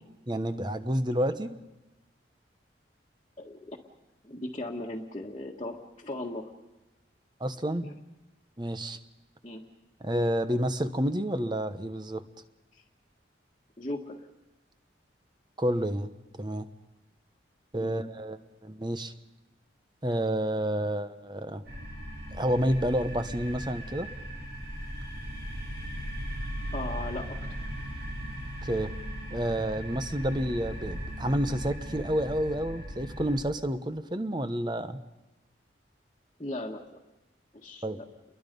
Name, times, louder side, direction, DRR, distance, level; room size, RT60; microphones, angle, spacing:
voice 1, 0.3-1.6 7.4-7.9 8.6-9.0 10.0-12.2 15.6-16.1 16.4-16.7 17.7-19.1 20.0-21.6 22.3-24.1 28.6-28.9 29.3-35.0 37.8-38.0, equal, 25° right, 10 dB, 1.1 m, -29 dB
voice 2, 3.4-3.8 4.2-6.5 7.8-7.9 9.4-9.6 12.7-12.8 13.8-14.2 17.8-18.0 26.7-27.3 36.4-36.8 37.5-38.0, left 1 dB, 30° left, -3 dB, 1.6 m, -37 dB
sound 1, 21.7-33.4, equal, 60° right, 5.6 m, -38 dB
29.5 x 22.5 x 5.4 m, 1.0 s
head